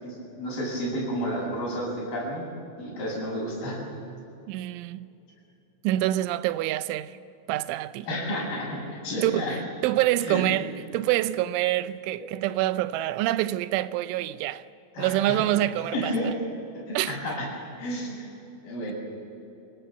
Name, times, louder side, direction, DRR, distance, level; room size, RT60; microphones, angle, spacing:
voice 1, 0.0-2.4 2.8-3.8 8.1-8.8 9.0-9.6 10.2-10.4 14.9-15.4 15.9-16.3 16.7-17.5 17.8-18.2 18.6-18.9, equal, 45° left, 9.4 m, -31 dB
voice 2, 4.5-5.1 5.8-7.2 7.5-8.1 9.2-14.6 15.0-16.3 16.9-17.2, right 14 dB, 80° right, 3.1 m, -26 dB
29.0 x 18.5 x 7.2 m
omnidirectional pair, 5.6 m